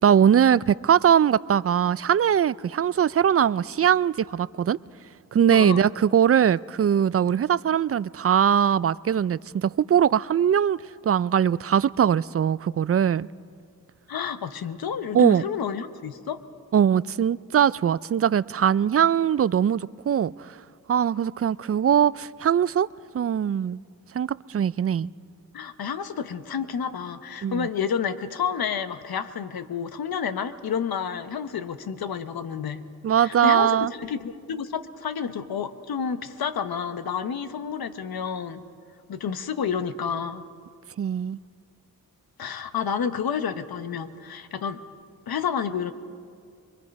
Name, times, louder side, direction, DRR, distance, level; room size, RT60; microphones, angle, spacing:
voice 1, 0.0-4.8 5.3-13.3 15.1-15.4 16.7-20.6 20.9-22.9 23.1-23.8 24.1-25.1 27.4-27.7 33.0-33.9 41.0-41.4, right 9 dB, 40° right, 19 dB, 0.4 m, -21 dB
voice 2, 5.5-5.8 14.1-16.4 25.5-32.8 33.2-38.6 39.1-40.4 42.4-44.8 45.3-45.9, left 7 dB, 75° left, 10 dB, 1.0 m, -30 dB
24.0 x 23.0 x 5.3 m, 2.2 s
cardioid pair, 55°, 36 cm